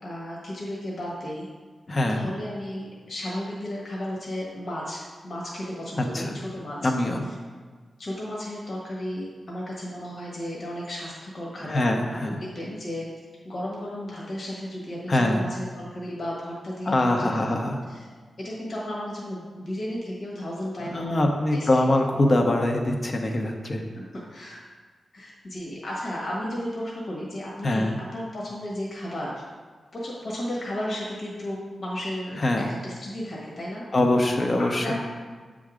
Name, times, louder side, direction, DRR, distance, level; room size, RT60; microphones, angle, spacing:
voice 1, 0.0-1.5 2.1-6.9 8.0-11.8 12.4-13.1 13.4-17.5 17.9-18.1 18.4-21.9 23.9-24.6 25.1-29.3 29.9-33.8 34.6-35.0, equal, 60° left, -5 dB, 1.5 m, -34 dB
voice 2, 1.9-2.3 6.0-6.4 6.8-7.2 11.6-12.4 15.1-15.5 16.9-17.8 20.8-23.8 27.6-28.0 32.4-32.7 33.9-35.0, left 1 dB, 45° left, 3 dB, 0.9 m, -23 dB
7.0 x 3.7 x 5.0 m, 1.5 s
cardioid pair, 65°, 0 cm